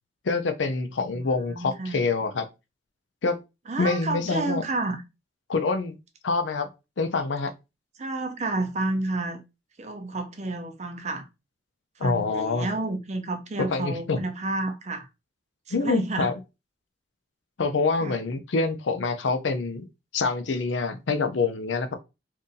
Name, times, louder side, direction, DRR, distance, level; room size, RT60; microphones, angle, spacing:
voice 1, 0.2-2.5 3.2-3.4 3.8-4.6 5.5-6.0 6.2-6.7 7.0-7.5 12.0-12.7 13.6-14.2 15.7-16.3 17.6-19.9 20.1-21.9, left 4 dB, 75° left, 0.5 m, -26 dB
voice 2, 1.1-2.0 3.7-5.0 8.0-9.4 9.8-11.2 12.0-15.1 15.8-16.3 18.0-18.2, right 2 dB, 40° right, 0.6 m, -30 dB
2.7 x 2.6 x 3.8 m
head